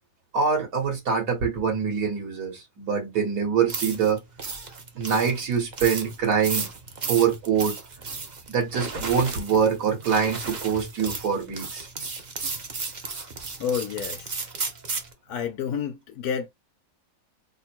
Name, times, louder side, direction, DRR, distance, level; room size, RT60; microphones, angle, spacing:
voice 1, 0.3-4.2 5.0-6.7 7.1-7.7 8.5-11.9, right 6 dB, 70° right, 1.8 m, -24 dB
sound 1, 3.7-15.1, right 4 dB, 40° right, 0.7 m, -34 dB
voice 2, 13.6-14.5 15.3-16.5, left 7 dB, 70° left, 1.1 m, -30 dB
3.6 x 2.2 x 4.3 m
omnidirectional pair, 1.7 m